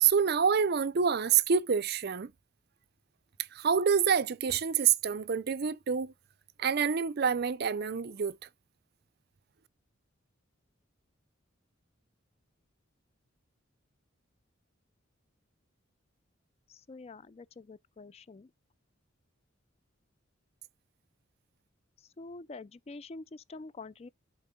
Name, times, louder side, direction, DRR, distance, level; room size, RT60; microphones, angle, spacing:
voice 1, 0.0-2.3 3.5-6.1 6.6-8.4, right 7 dB, 50° right, 0.5 m, -27 dB
voice 2, 16.9-18.5 22.2-24.1, left 3 dB, 30° left, 0.4 m, -46 dB
7.5 x 4.3 x 3.7 m
head